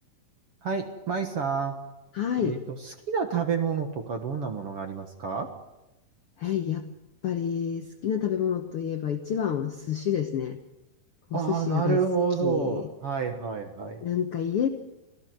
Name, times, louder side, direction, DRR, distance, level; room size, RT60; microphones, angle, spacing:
voice 1, 0.6-1.7 2.4-5.5 11.3-14.0, right 6 dB, 50° right, 5 dB, 2.0 m, -29 dB
voice 2, 2.1-2.6 6.4-6.9 7.2-10.6 11.3-12.0 12.4-12.9 14.0-14.7, left 9 dB, 90° left, 6 dB, 1.2 m, -28 dB
25.5 x 16.5 x 7.8 m, 0.97 s
omnidirectional pair, 4.1 m